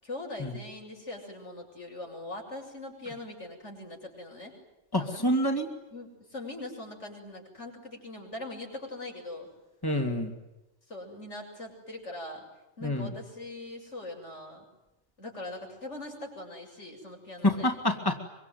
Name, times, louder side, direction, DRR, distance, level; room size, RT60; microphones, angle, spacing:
voice 1, 0.0-4.6 4.9-5.6 5.9-9.5 10.9-12.5 12.8-14.7 15.2-17.7, left 2 dB, 70° left, 1 dB, 7.3 m, -41 dB
voice 2, 4.9-5.7 9.8-10.3 12.8-13.1 17.4-18.1, left 1 dB, 20° left, 5 dB, 2.7 m, -27 dB
25.5 x 25.0 x 9.4 m, 0.96 s
omnidirectional pair, 1.2 m